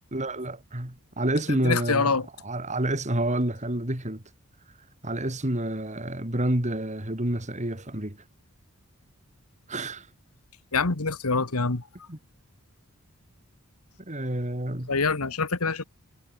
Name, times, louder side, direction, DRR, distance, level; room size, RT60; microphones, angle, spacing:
voice 1, 0.1-2.2 2.4-4.2 5.0-8.2 9.7-10.1 12.1-12.2 14.1-14.9, right 1 dB, 30° right, 3.0 m, -28 dB
voice 2, 1.6-2.3 10.7-11.8 14.9-15.8, left 4 dB, 85° left, 1.7 m, -25 dB
head